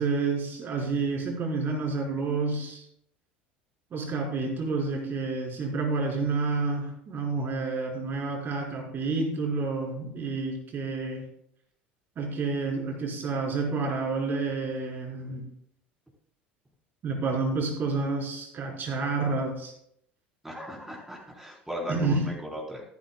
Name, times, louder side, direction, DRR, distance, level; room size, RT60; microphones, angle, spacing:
voice 1, 0.0-2.8 3.9-11.2 12.2-15.5 17.0-19.7 21.9-22.3, right 3 dB, 40° right, -1 dB, 4.1 m, -29 dB
voice 2, 20.4-22.8, equal, 5° right, -3 dB, 3.8 m, -37 dB
14.0 x 11.5 x 2.3 m, 0.70 s
hypercardioid pair, 70°, 5 cm